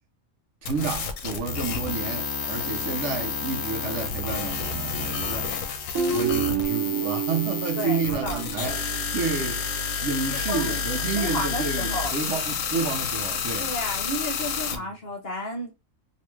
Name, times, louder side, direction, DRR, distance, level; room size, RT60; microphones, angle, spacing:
sound 1, 0.6-14.8, left 6 dB, 80° left, 1.0 m, -30 dB
voice 1, 0.6-5.5 6.1-8.7 9.1-9.6 10.0-13.7 14.7-14.9, right 5 dB, 65° right, 0.9 m, -30 dB
Guitar, 5.9-9.2, right 7 dB, 85° right, 1.3 m, -29 dB
voice 2, 7.7-8.8 10.5-10.8 11.1-12.1 13.6-15.7, equal, 50° left, 1.2 m, -32 dB
3.1 x 2.7 x 3.1 m
omnidirectional pair, 1.4 m